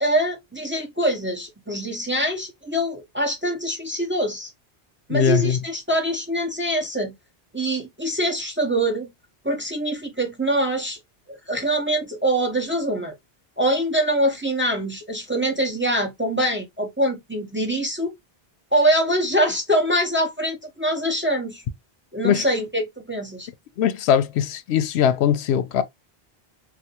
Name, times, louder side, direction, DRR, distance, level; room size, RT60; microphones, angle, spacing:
voice 1, 0.0-4.5 5.1-7.1 7.5-9.1 9.4-11.0 11.3-13.1 13.6-18.1 18.7-21.6 22.1-23.5, right 1 dB, 15° right, 0.6 m, -24 dB
voice 2, 5.1-5.6 22.2-22.5 23.8-25.8, left 8 dB, 90° left, 0.8 m, -20 dB
3.4 x 2.4 x 2.8 m
omnidirectional pair, 1.1 m